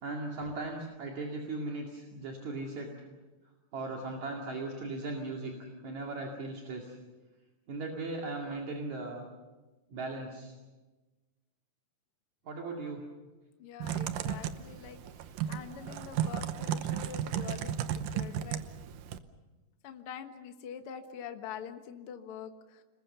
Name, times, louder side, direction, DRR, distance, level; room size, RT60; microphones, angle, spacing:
voice 1, 0.0-2.9 3.7-5.5 5.8-6.9 7.7-9.3 9.9-10.5 12.5-13.0, right 2 dB, 60° right, 0 dB, 3.6 m, -38 dB
voice 2, 13.6-17.8 18.1-18.6 19.8-22.8, left 8 dB, 55° left, 6 dB, 1.9 m, -45 dB
Typing, 13.8-19.2, right 9 dB, 80° right, 2.5 m, -34 dB
29.5 x 20.5 x 6.9 m, 1.2 s
omnidirectional pair, 3.8 m